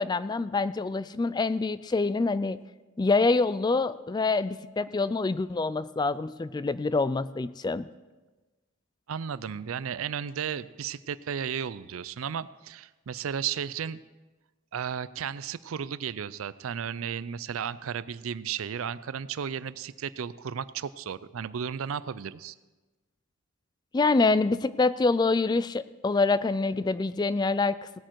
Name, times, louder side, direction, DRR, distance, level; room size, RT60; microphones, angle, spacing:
voice 1, 0.0-2.6 3.0-7.9 23.9-27.7, left 3 dB, 20° left, 15 dB, 0.3 m, -26 dB
voice 2, 9.1-14.0 14.7-22.5, right 7 dB, 85° right, 17 dB, 0.4 m, -34 dB
18.0 x 8.8 x 4.6 m, 1.2 s
head